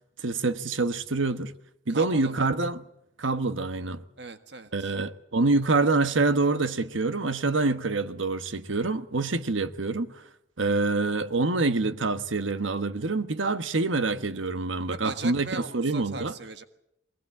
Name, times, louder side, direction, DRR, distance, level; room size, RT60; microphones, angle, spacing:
voice 1, 0.2-1.5 1.9-2.8 3.2-4.0 4.7-10.2 10.6-16.3, right 3 dB, 90° right, 1.3 m, -26 dB
voice 2, 1.9-2.5 4.2-4.9 14.8-16.6, right 3 dB, 65° right, 1.7 m, -38 dB
22.0 x 19.5 x 8.7 m
head